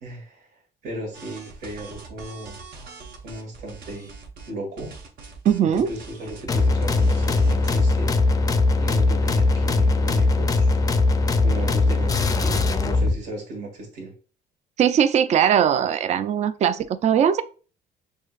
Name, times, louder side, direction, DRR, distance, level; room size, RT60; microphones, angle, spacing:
voice 1, 0.0-2.6 3.2-4.1 4.4-4.9 5.6-8.4 8.8-10.8 11.4-14.1, right 1 dB, 85° right, 1.6 m, -36 dB
sound 1, 1.1-4.5 4.8-7.9, right 4 dB, 60° right, 1.0 m, -42 dB
voice 2, 5.4-5.9 14.8-17.4, right 8 dB, 45° right, 0.4 m, -20 dB
sound 2, 6.5-13.2, left 3 dB, 20° left, 0.4 m, -20 dB
6.4 x 2.6 x 2.4 m
cardioid pair, 110°, 17 cm